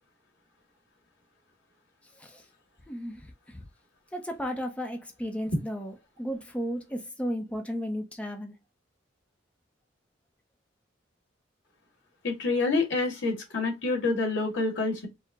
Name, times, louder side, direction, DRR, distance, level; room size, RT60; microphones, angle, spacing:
voice 1, 2.9-3.7 4.1-8.6, equal, 5° left, 0.6 m, -34 dB
voice 2, 12.2-15.1, left 3 dB, 85° left, 2.0 m, -27 dB
4.6 x 2.1 x 3.5 m
head